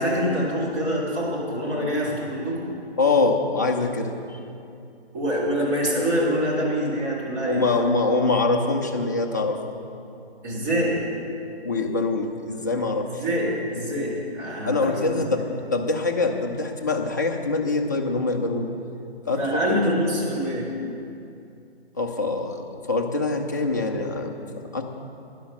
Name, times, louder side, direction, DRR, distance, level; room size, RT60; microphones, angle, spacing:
voice 1, 0.0-2.7 5.1-7.6 10.4-11.0 13.2-15.2 19.3-20.7, equal, 25° right, -6 dB, 3.1 m, -25 dB
voice 2, 3.0-4.4 7.4-9.6 11.6-13.2 14.7-15.4 15.7-18.7 19.3-19.8 22.0-24.8, left 3 dB, 20° left, 1 dB, 0.5 m, -24 dB
11.5 x 11.0 x 5.8 m, 2.6 s
figure-of-eight pair, 155°, 32 cm